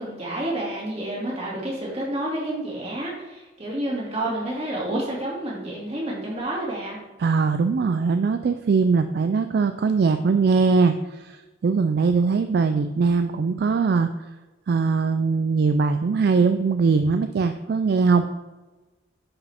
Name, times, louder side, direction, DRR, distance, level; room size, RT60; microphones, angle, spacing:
voice 1, 0.0-7.0, right 1 dB, 30° right, -4 dB, 2.3 m, -29 dB
voice 2, 7.2-14.1 14.7-18.2, right 4 dB, 50° right, 9 dB, 0.3 m, -21 dB
10.5 x 4.8 x 3.5 m, 1.2 s
head